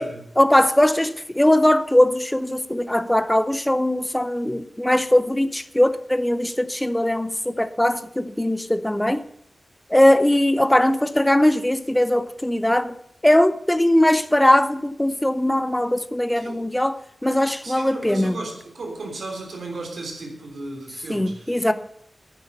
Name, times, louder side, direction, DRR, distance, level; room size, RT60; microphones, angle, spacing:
voice 1, 0.4-9.2 9.9-12.9 13.2-18.4 21.1-21.7, left 1 dB, 10° left, 0.5 m, -20 dB
voice 2, 16.4-16.7 17.6-21.7, right 2 dB, 85° right, 3.5 m, -35 dB
10.0 x 9.3 x 6.8 m
wide cardioid pair, 130°, 0 cm